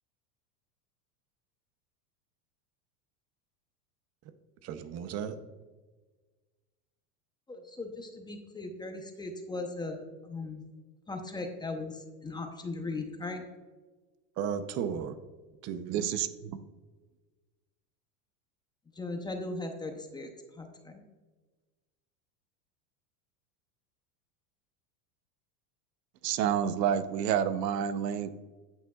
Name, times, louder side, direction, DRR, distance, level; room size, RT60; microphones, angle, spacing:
voice 1, 4.6-5.4 14.4-15.2 15.6-16.1, right 8 dB, 35° right, 11 dB, 0.6 m, -35 dB
voice 2, 7.5-10.6 11.1-13.4 18.9-21.0, left 2 dB, 10° left, 4 dB, 0.6 m, -38 dB
voice 3, 15.9-16.6 26.2-28.3, right 9 dB, 90° right, 13 dB, 0.8 m, -29 dB
9.0 x 8.7 x 2.3 m, 1.3 s
supercardioid pair, 135°, 47 cm